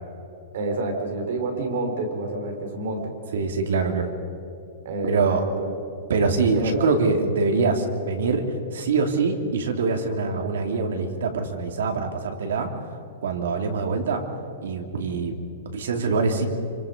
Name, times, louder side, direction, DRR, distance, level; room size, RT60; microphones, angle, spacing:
voice 1, 0.5-3.1 4.8-5.7 6.5-6.9, right 2 dB, 60° right, 3 dB, 4.6 m, -28 dB
voice 2, 3.3-4.1 5.1-5.4 6.1-8.5 8.7-12.7 13.2-14.2 14.6-16.5, right 4 dB, 90° right, 4 dB, 3.1 m, -24 dB
27.5 x 25.0 x 5.4 m, 2.8 s
supercardioid pair, 170°, 0 cm